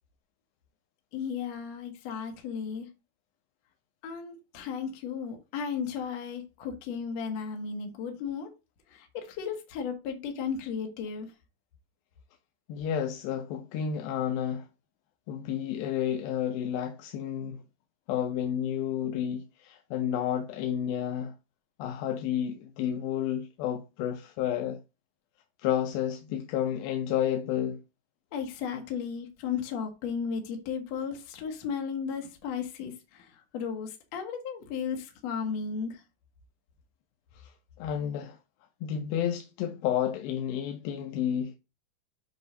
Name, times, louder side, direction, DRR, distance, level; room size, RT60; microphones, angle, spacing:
voice 1, 1.1-2.9 4.0-8.5 8.9-11.3 28.3-36.0, left 6 dB, 60° left, 2.0 m, -35 dB
voice 2, 12.7-14.7 15.3-17.6 18.1-21.3 21.8-24.8 25.6-27.8 37.3-38.4 38.8-41.6, left 9 dB, 80° left, 2.3 m, -31 dB
8.1 x 2.8 x 5.2 m
omnidirectional pair, 4.4 m